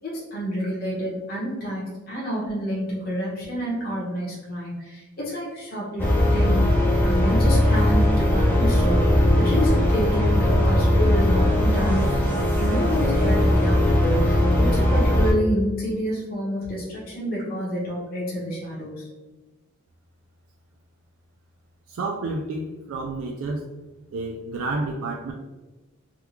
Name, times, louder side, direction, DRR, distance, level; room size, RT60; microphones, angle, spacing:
voice 1, 0.0-6.0 6.3-6.6 7.0-19.1, equal, 45° left, -6 dB, 1.1 m, -28 dB
sound 1, 6.0-15.3, left 1 dB, 10° left, 0.5 m, -19 dB
voice 2, 21.9-23.6 24.1-25.3, right 2 dB, 75° right, 0 dB, 0.4 m, -30 dB
3.5 x 2.4 x 2.9 m, 1.1 s
head